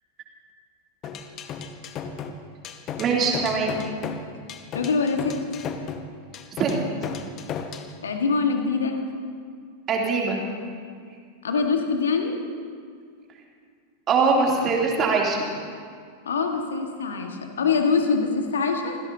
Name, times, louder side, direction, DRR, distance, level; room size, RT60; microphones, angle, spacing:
sound 1, 1.0-7.9, left 6 dB, 35° left, 1.0 m, -34 dB
voice 1, 3.0-3.8 6.6-6.7 7.0-7.1 9.9-10.4 14.1-15.4, right 4 dB, 30° right, -1 dB, 3.1 m, -22 dB
voice 2, 4.7-5.3 8.0-9.0 11.4-12.4 16.2-19.0, left 4 dB, 65° left, 4 dB, 1.8 m, -24 dB
26.5 x 16.5 x 2.9 m, 2.2 s
figure-of-eight pair, 90°, 0 cm